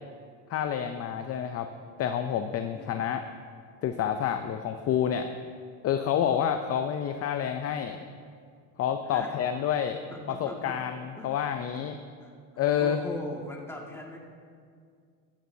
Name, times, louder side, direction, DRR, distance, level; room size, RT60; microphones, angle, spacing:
voice 1, 0.5-1.7 2.0-3.2 3.8-5.3 5.8-8.0 8.8-10.0 10.3-12.0 12.6-13.0, left 9 dB, 35° left, 8 dB, 0.6 m, -28 dB
voice 2, 2.7-3.0 9.1-9.3 10.1-10.8 11.2-11.4 12.2-14.2, left 1 dB, 5° left, -1 dB, 1.9 m, -41 dB
16.0 x 12.5 x 2.8 m, 2.2 s
supercardioid pair, 110°, 41 cm